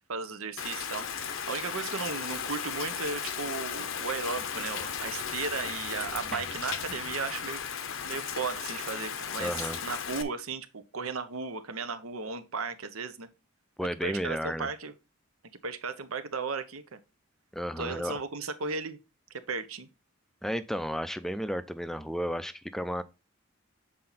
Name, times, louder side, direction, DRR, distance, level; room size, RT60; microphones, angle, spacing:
voice 1, 0.1-7.6 8.0-13.3 14.0-14.9 15.6-17.0 17.8-19.0 19.5-19.9, right 4 dB, 80° right, 0.8 m, -35 dB
Rain, 0.6-10.2, left 7 dB, 65° left, 0.7 m, -35 dB
voice 2, 9.4-9.8 13.8-14.7 17.5-18.2 20.4-23.0, equal, ahead, 0.3 m, -33 dB
7.6 x 4.3 x 3.9 m
head